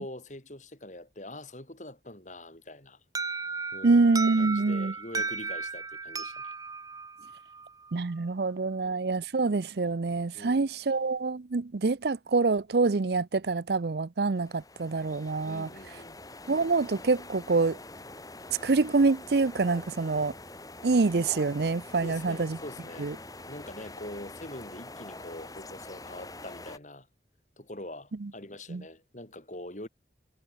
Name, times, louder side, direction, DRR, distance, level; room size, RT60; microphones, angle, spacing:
voice 1, 0.0-3.0 3.7-4.1 4.4-6.5 8.7-9.0 10.3-10.7 15.4-16.2 22.0-23.1 23.5-27.1 27.6-29.9, left 1 dB, 45° left, 4.8 m, -44 dB
Alarm, 3.2-7.9, right 4 dB, 20° right, 1.8 m, -35 dB
voice 2, 3.8-4.9 7.9-15.7 16.5-17.8 18.6-20.3 20.8-22.6 23.0-23.1 28.2-28.3 28.7-28.8, right 3 dB, 65° right, 0.6 m, -26 dB
sound 1, 14.4-26.8, left 2 dB, 20° left, 6.8 m, -45 dB
head